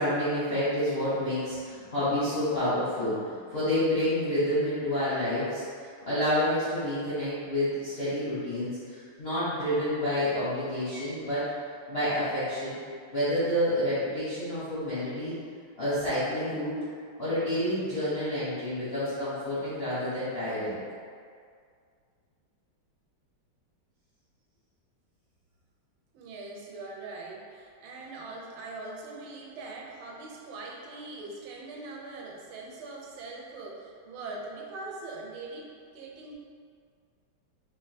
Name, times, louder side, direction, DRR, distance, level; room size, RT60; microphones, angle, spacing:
voice 1, 0.0-11.5 11.9-12.8 13.1-15.3 15.8-16.8 17.2-20.8, left 1 dB, 55° left, -13 dB, 0.6 m, -29 dB
voice 2, 26.1-36.4, right 3 dB, 85° right, -2 dB, 1.5 m, -42 dB
3.6 x 2.2 x 4.1 m, 2.1 s
omnidirectional pair, 2.3 m